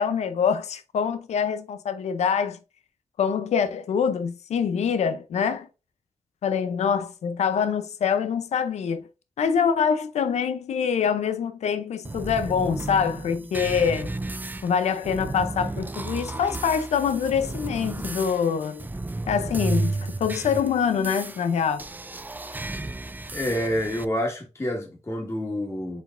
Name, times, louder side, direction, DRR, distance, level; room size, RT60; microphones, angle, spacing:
voice 1, 0.0-2.6 3.2-5.7 6.4-9.1 9.4-14.2 14.6-18.8 19.3-19.9 20.2-21.9, left 7 dB, 85° left, 0.6 m, -25 dB
sound 1, 12.0-24.0, right 2 dB, 15° right, 0.4 m, -33 dB
voice 2, 23.3-26.0, equal, 25° left, 1.6 m, -28 dB
4.7 x 4.1 x 2.5 m
cardioid pair, 60°, 11 cm